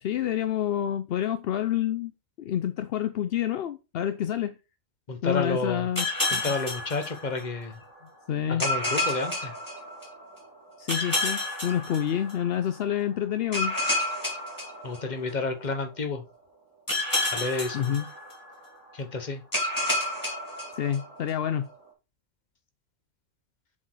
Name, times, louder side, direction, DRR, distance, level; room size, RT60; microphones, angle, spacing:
voice 1, 0.0-2.1 2.4-4.6 5.2-6.1 6.3-6.5 8.3-8.6 10.8-13.8 17.7-18.1 20.7-21.7, left 10 dB, 60° left, 0.6 m, -28 dB
voice 2, 5.1-5.9 6.3-7.8 8.5-9.5 14.8-16.2 17.3-18.0 18.9-19.4, left 3 dB, 35° left, 1.2 m, -30 dB
sound 1, 5.9-7.7 8.6-10.3 10.9-12.6 13.5-15.5 16.9-18.7 19.5-21.3, left 2 dB, 15° left, 3.1 m, -30 dB
7.3 x 4.4 x 4.6 m
omnidirectional pair, 1.4 m